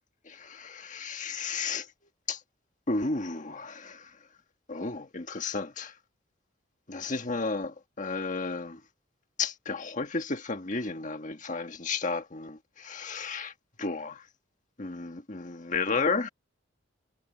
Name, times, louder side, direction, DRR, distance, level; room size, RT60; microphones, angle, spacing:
voice 1, 0.3-1.9 2.3-2.4 2.9-4.1 4.7-5.9 6.9-8.8 9.4-13.5 13.8-14.2 14.8-16.3, left 4 dB, 40° left, 1.5 m, -33 dB
head